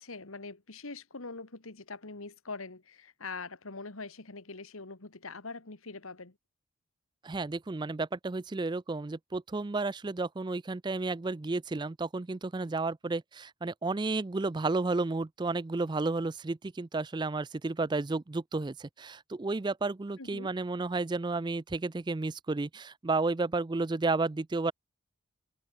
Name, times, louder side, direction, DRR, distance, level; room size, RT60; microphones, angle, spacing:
voice 1, 0.0-6.4 20.2-20.5, left 3 dB, 75° left, 1.9 m, -43 dB
voice 2, 7.2-24.7, right 3 dB, 20° right, 0.4 m, -32 dB
open air
head